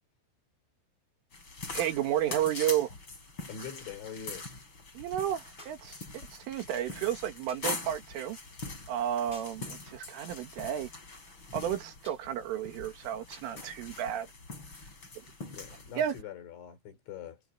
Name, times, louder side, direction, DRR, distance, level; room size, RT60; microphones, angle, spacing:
sound 1, 1.3-16.2, left 3 dB, 25° left, 5.6 m, -43 dB
voice 1, 1.7-2.9 4.9-8.4 8.9-10.9 11.5-14.3 15.2-15.3 16.0-16.1, right 11 dB, 85° right, 4.7 m, -32 dB
voice 2, 3.5-4.5 15.5-17.4, left 8 dB, 70° left, 6.7 m, -43 dB
sound 2, 5.6-5.9 7.5-7.8 9.3-9.6 12.0-12.3 13.3-13.6 14.7-14.8, left 1 dB, 10° left, 7.0 m, -53 dB
omnidirectional pair, 5.5 m